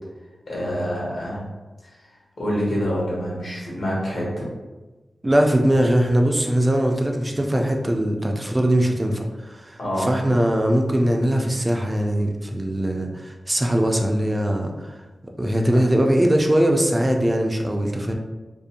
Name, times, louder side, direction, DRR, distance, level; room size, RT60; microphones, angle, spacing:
voice 1, 0.5-1.5 1.8-1.9 2.4-4.5 9.8-10.1, equal, 75° left, -6 dB, 1.0 m, -26 dB
voice 2, 5.2-15.0 15.4-18.1, right 1 dB, 20° right, 2 dB, 0.3 m, -21 dB
2.5 x 2.1 x 2.7 m, 1.2 s
wide cardioid pair, 80°, 0 cm